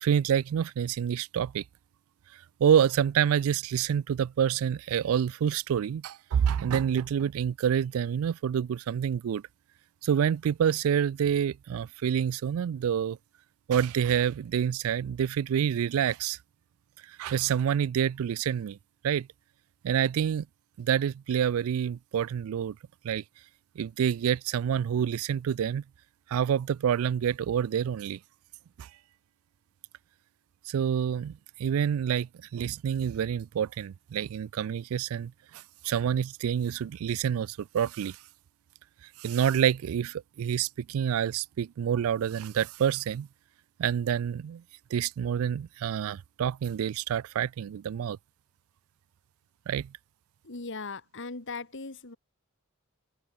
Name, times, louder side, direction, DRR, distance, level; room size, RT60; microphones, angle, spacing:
voice 1, 0.0-1.6 2.6-9.4 10.0-13.2 13.7-16.4 17.1-18.8 19.0-19.3 19.8-20.5 20.8-22.8 23.0-23.2 23.8-25.8 26.3-28.2 28.8-28.9 30.7-38.2 39.2-43.3 43.8-44.6 44.9-48.2 49.7-49.9, right 8 dB, 70° right, 0.3 m, -27 dB
voice 2, 50.4-52.2, left 3 dB, 55° left, 1.7 m, -38 dB
open air
head